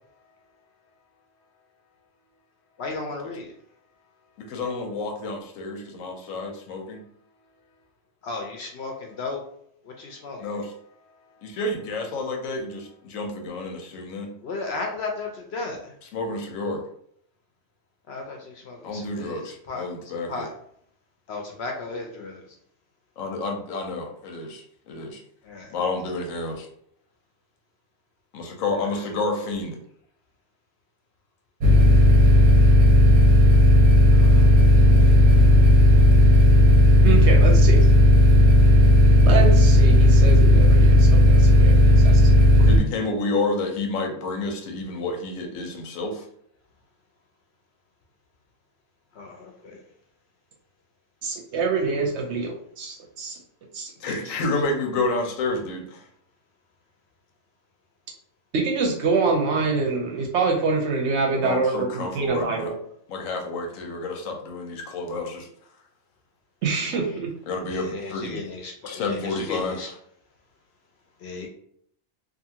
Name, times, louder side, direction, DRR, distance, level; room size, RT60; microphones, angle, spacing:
voice 1, 2.8-3.5 8.2-9.4 9.8-10.4 14.4-15.9 18.1-20.5 21.3-22.4 25.4-25.7 34.1-35.2 49.1-49.8 67.7-69.9 71.2-71.5, left 3 dB, 65° left, 1 dB, 0.7 m, -35 dB
voice 2, 4.4-7.0 10.4-10.7 11.4-14.3 16.1-16.8 18.8-20.5 23.2-25.2 25.7-26.7 28.3-29.8 42.6-46.2 54.0-56.0 61.3-62.7 63.1-65.5 66.9-67.0 67.5-68.4 68.9-69.9, left 3 dB, 85° left, 2 dB, 1.0 m, -30 dB
sound 1, 31.6-42.8, left 1 dB, 90° right, 1.0 m, -14 dB
voice 3, 37.0-37.8 39.2-42.2 51.2-53.4 53.7-54.2 58.5-62.7 66.6-67.3, right 4 dB, 65° right, 1 dB, 0.8 m, -25 dB
2.6 x 2.5 x 2.7 m, 0.67 s
omnidirectional pair, 1.4 m